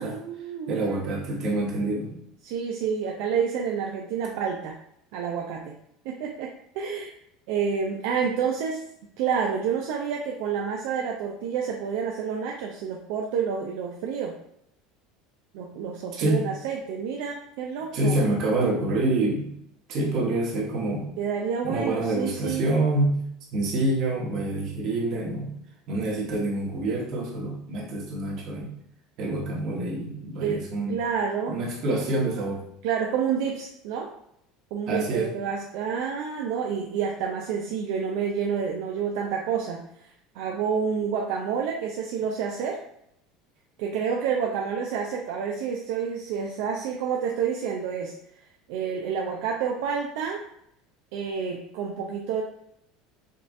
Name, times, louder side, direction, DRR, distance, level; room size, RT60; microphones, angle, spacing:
voice 1, 0.0-1.0 2.4-4.8 5.1-5.8 6.0-7.1 7.5-8.8 9.2-14.3 15.5-18.2 21.2-22.7 30.4-31.6 32.8-34.1 34.7-40.1 40.3-42.8 43.8-48.1 48.7-50.5 51.1-52.4, right 6 dB, 75° right, 1 dB, 0.4 m, -29 dB
voice 2, 0.7-2.1 16.2-16.4 17.9-19.5 19.9-21.1 21.6-23.3 23.5-25.5 25.9-28.7 29.2-31.0 31.5-32.6 34.9-35.3, right 2 dB, 50° right, -3 dB, 1.3 m, -26 dB
5.3 x 2.4 x 2.6 m, 0.75 s
supercardioid pair, 135°, 0 cm